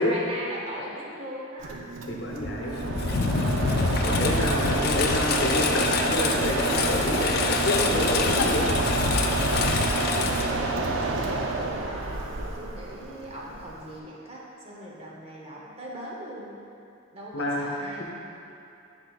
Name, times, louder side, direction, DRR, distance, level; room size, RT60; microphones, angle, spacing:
voice 1, 0.0-1.9 10.1-16.6 17.1-18.0, right 1 dB, 30° right, -4 dB, 0.8 m, -39 dB
Mechanisms, 1.6-14.0, right 2 dB, 80° right, 0.5 m, -28 dB
voice 2, 2.1-2.8 4.0-8.7 17.3-17.7, left 1 dB, 65° left, -2 dB, 0.9 m, -28 dB
Engine, 2.4-11.1, left 4 dB, 50° left, 0.4 m, -27 dB
9.6 x 4.4 x 2.3 m, 2.8 s
head